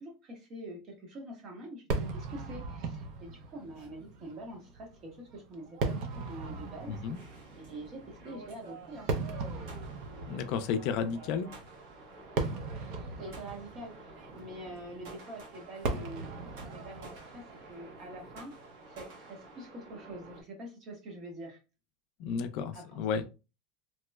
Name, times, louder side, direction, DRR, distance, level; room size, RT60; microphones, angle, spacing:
voice 1, 0.0-7.0 7.6-9.1 13.2-18.6 18.8-21.6 22.7-23.3, right 1 dB, 30° right, 2 dB, 0.9 m, -45 dB
Fireworks, 1.9-19.2, right 3 dB, 55° right, 0.6 m, -39 dB
sound 1, 5.9-20.4, right 2 dB, 75° right, 1.4 m, -51 dB
voice 2, 6.9-7.2 10.3-11.5 22.2-23.2, left 6 dB, 55° left, 9 dB, 0.4 m, -32 dB
3.0 x 2.9 x 2.2 m, 0.30 s
supercardioid pair, 165°, 0 cm